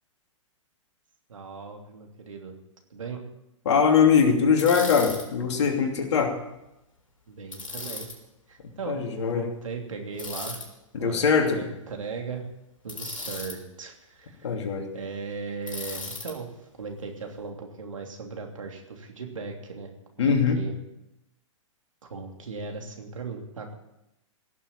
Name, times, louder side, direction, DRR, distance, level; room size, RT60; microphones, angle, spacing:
voice 1, 1.3-2.5 2.9-3.2 7.3-8.1 8.5-10.6 11.0-11.3 11.5-12.5 12.8-14.6 14.9-16.5 16.8-19.9 20.2-20.7 22.0-23.7, right 4 dB, 75° right, 3 dB, 3.0 m, -38 dB
voice 2, 3.6-6.3 8.9-9.5 10.9-11.6 14.4-14.9 20.2-20.6, left 6 dB, 60° left, 3 dB, 2.9 m, -22 dB
Bicycle, 4.6-5.3 7.5-8.2 10.2-10.7 12.9-13.6 15.7-16.3, left 3 dB, 85° left, 3.8 m, -36 dB
17.0 x 7.3 x 8.9 m, 0.89 s
figure-of-eight pair, 115°, 17 cm